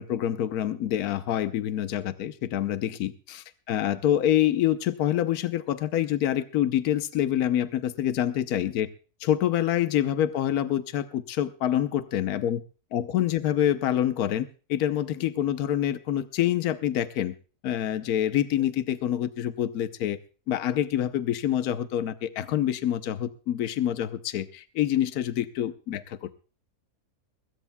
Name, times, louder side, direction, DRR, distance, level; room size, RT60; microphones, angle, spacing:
voice 1, 0.0-8.9 9.2-12.6 12.9-17.3 17.6-20.2 20.5-26.3, left 11 dB, 70° left, 11 dB, 1.3 m, -26 dB
20.5 x 17.0 x 2.2 m, 0.36 s
omnidirectional pair, 1.7 m